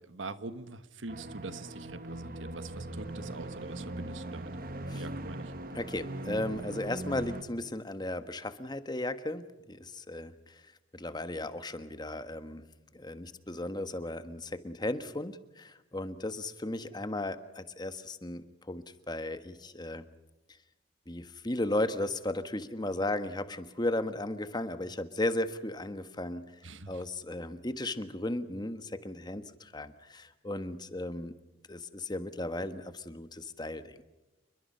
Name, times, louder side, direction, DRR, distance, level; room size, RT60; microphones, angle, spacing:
voice 1, 0.0-4.5 4.9-5.5 26.6-27.0, right 3 dB, 85° right, 12 dB, 1.4 m, -43 dB
sound 1, 1.1-7.4, right 1 dB, 50° right, 1.5 m, -40 dB
voice 2, 5.7-10.6 10.9-12.6 12.9-20.0 21.1-26.5 26.9-31.3 31.7-34.0, left 1 dB, 20° left, 10 dB, 1.4 m, -35 dB
29.0 x 22.5 x 5.6 m, 1.0 s
head